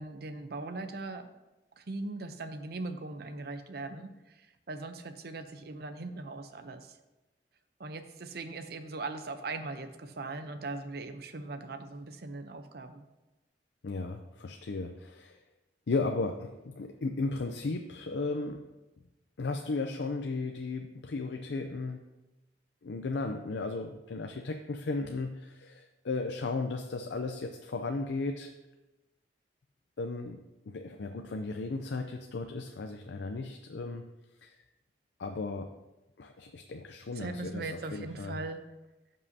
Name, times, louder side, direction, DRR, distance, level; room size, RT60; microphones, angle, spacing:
voice 1, 0.0-1.3 1.8-7.0 7.8-13.1 37.1-38.6, right 3 dB, 60° right, 8 dB, 0.7 m, -40 dB
voice 2, 13.8-15.4 15.9-18.6 19.4-22.1 22.8-28.5 30.0-34.0 34.4-34.6 35.2-35.7 36.2-38.4, left 3 dB, 80° left, 5 dB, 0.5 m, -35 dB
14.5 x 5.5 x 2.8 m, 1.0 s
head